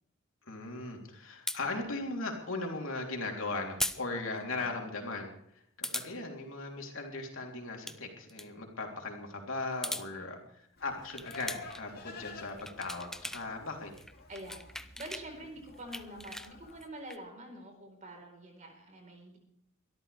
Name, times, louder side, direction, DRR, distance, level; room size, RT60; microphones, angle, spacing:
voice 1, 0.5-5.3 5.8-13.9, left 3 dB, 70° left, 1 dB, 3.4 m, -38 dB
sound 1, 1.5-1.6 3.8-4.0 4.3-4.4 5.8-6.1 7.6-8.0 8.3-8.5 9.6-10.1 11.1-11.8 12.4-13.4 13.7-15.3 15.6-17.2, left 1 dB, ahead, 0.6 m, -39 dB
voice 2, 4.5-4.8 10.1-10.4 14.3-19.4, right 1 dB, 35° right, 3 dB, 4.2 m, -47 dB
Livestock farm animals working animals, 10.8-16.8, left 3 dB, 50° left, 2.9 m, -51 dB
23.0 x 13.0 x 3.4 m, 0.72 s
head